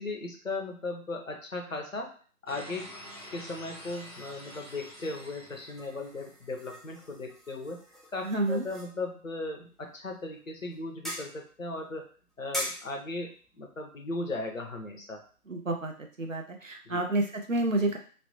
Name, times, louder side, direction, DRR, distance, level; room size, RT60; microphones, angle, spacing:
voice 1, 0.0-2.1 2.4-3.0 3.3-7.8 8.1-12.0 12.4-15.2 16.9-17.0, left 2 dB, 60° left, 2 dB, 0.7 m, -37 dB
sound 1, 2.5-6.6, equal, 25° right, 0.9 m, -47 dB
sound 2, 2.9-16.0, equal, ahead, 0.4 m, -45 dB
voice 2, 8.2-8.6 15.5-18.0, right 2 dB, 55° right, 3 dB, 0.6 m, -29 dB
3.1 x 2.0 x 2.8 m, 0.41 s
figure-of-eight pair, 170°, 46 cm